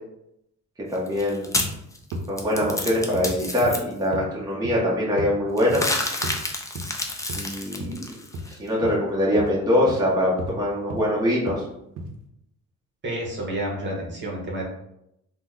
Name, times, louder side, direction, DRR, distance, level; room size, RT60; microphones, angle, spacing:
sound 1, 0.9-3.8 5.6-8.6, left 2 dB, 10° left, 0.4 m, -29 dB
voice 1, 0.9-1.5 2.3-5.8 7.3-8.1 8.5-11.6, left 1 dB, 15° right, -5 dB, 0.9 m, -23 dB
sound 2, 1.1-1.2 1.6-1.8 2.1-2.3 2.6-2.8 3.1-3.3 3.6-3.8 4.1-4.3 4.6-4.9 5.2-5.3 5.7-5.9 6.2-6.4 6.8-6.9 7.3-7.4 7.8-8.0 8.3-8.5 8.8-9.0 9.4-9.6 9.9-10.0 10.4-10.6 10.9-11.1 11.5-11.6 12.0-12.1, right 1 dB, 80° right, 0.6 m, -34 dB
voice 2, 13.0-14.6, right 1 dB, 40° right, -3 dB, 1.0 m, -30 dB
2.8 x 2.2 x 3.6 m, 0.79 s
cardioid pair, 90°, 30 cm